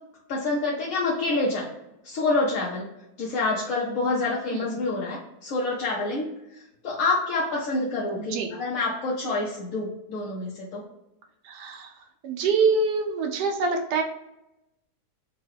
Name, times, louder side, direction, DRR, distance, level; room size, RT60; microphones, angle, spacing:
voice 1, 0.3-1.7 2.0-2.8 3.2-6.3 6.8-10.8, left 3 dB, 60° left, -4 dB, 1.1 m, -27 dB
voice 2, 4.5-4.9 8.2-8.5 11.4-11.9 12.2-14.0, right 4 dB, 85° right, 3 dB, 1.2 m, -26 dB
3.7 x 2.3 x 3.3 m, 0.89 s
omnidirectional pair, 1.8 m